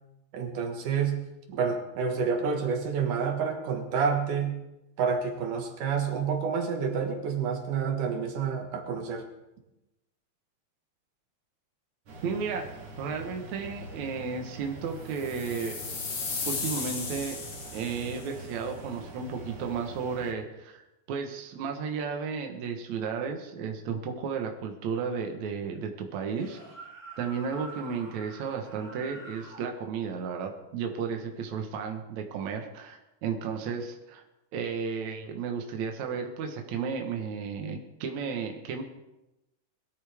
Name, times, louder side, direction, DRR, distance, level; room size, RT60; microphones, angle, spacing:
voice 1, 0.3-1.2 1.5-4.5 5.0-9.2, right 6 dB, 90° right, 3 dB, 3.3 m, -29 dB
sound 1, 12.1-20.3, right 1 dB, 55° right, 3.2 m, -44 dB
voice 2, 12.2-15.8 16.5-17.4 17.7-20.8 21.1-26.6 27.2-34.2 34.5-38.8, right 6 dB, 70° right, 3 dB, 2.5 m, -33 dB
sound 2, 15.1-18.3, left 4 dB, 90° left, 4.2 m, -35 dB
sound 3, 26.2-29.7, right 2 dB, 5° left, 3.2 m, -46 dB
22.0 x 13.5 x 3.5 m, 0.95 s
omnidirectional pair, 3.5 m